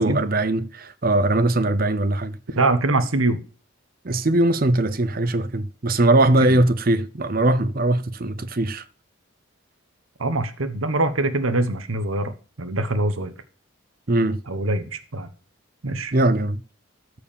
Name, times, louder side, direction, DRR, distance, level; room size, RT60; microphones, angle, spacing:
voice 1, 0.0-2.3 4.0-8.8 14.1-14.4 16.1-16.6, right 2 dB, 45° right, 0.7 m, -20 dB
voice 2, 2.6-3.4 6.2-6.6 10.2-13.3 14.5-15.3 15.8-16.1, right 2 dB, 75° right, 1.2 m, -23 dB
14.0 x 4.8 x 7.1 m
head